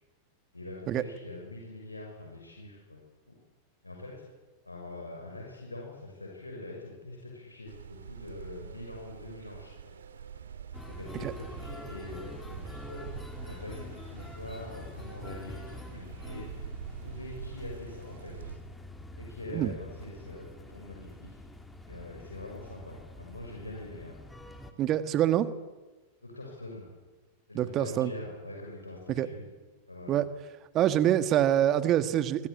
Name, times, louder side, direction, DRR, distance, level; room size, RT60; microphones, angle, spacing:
voice 1, 0.5-3.0 3.3-3.4 3.8-4.2 4.6-9.7 10.9-16.6 16.9-18.7 19.2-21.4 21.9-24.1 26.2-26.8 27.5-29.4 29.9-30.2, left 2 dB, 85° left, -1 dB, 6.5 m, -44 dB
sound 1, 7.7-18.6, right 8 dB, 65° right, 2.4 m, -45 dB
sound 2, 10.7-24.7, left 2 dB, 5° left, 3.3 m, -46 dB
voice 2, 24.8-25.5 27.5-28.1 29.1-29.3 30.1-30.3 30.7-32.5, right 11 dB, 35° right, 12 dB, 1.8 m, -25 dB
26.0 x 25.5 x 8.6 m, 1.2 s
figure-of-eight pair, 90°, 0 cm